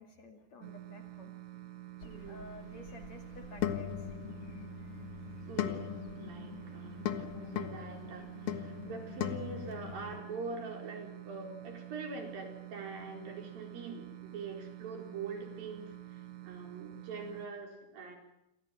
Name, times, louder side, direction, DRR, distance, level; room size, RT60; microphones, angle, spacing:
voice 1, 0.0-1.3 2.3-4.1, left 2 dB, 45° left, 5 dB, 3.3 m, -52 dB
sound 1, 0.6-17.5, right 15 dB, 80° right, 3.5 m, -48 dB
sound 2, 2.0-10.2, left 10 dB, 80° left, 1.2 m, -40 dB
voice 2, 2.0-2.5 5.5-5.9 6.2-18.2, right 4 dB, 60° right, 3 dB, 6.0 m, -44 dB
29.0 x 24.0 x 7.7 m, 0.88 s
omnidirectional pair, 4.7 m